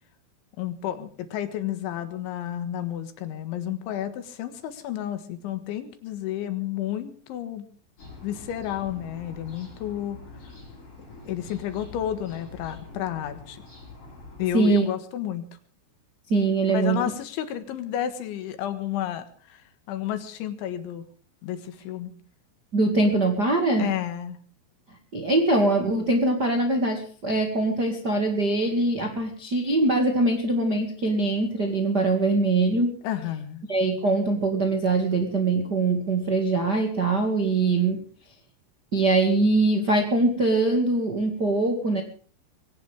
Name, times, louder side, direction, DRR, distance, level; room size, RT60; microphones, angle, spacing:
voice 1, 0.6-7.7 8.2-10.2 11.3-13.6 14.4-15.5 16.7-21.1 21.4-22.1 23.8-24.4 33.0-33.6, left 11 dB, 70° left, 9 dB, 3.7 m, -31 dB
sound 1, 8.0-14.5, left 2 dB, 30° left, 7.2 m, -45 dB
voice 2, 14.5-14.9 16.3-17.0 22.7-23.9 25.1-33.0 33.7-38.0 38.9-42.0, right 2 dB, 70° right, 4 dB, 0.9 m, -22 dB
21.5 x 17.5 x 3.6 m, 0.42 s
omnidirectional pair, 5.8 m